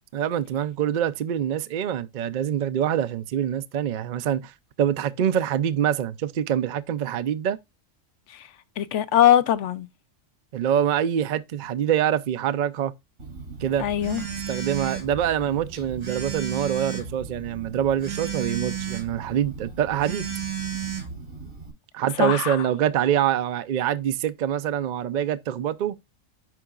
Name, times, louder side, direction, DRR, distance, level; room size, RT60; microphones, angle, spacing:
voice 1, 0.1-4.5 4.8-7.6 10.5-12.9 13.6-13.9 14.5-20.3 21.9-25.9, right 10 dB, 60° right, 0.5 m, -25 dB
voice 2, 8.8-9.9 13.8-14.2 22.2-22.6, left 11 dB, 70° left, 0.9 m, -21 dB
Telephone, 13.2-21.7, right 7 dB, 80° right, 2.5 m, -34 dB
11.0 x 3.9 x 2.3 m
omnidirectional pair, 1.4 m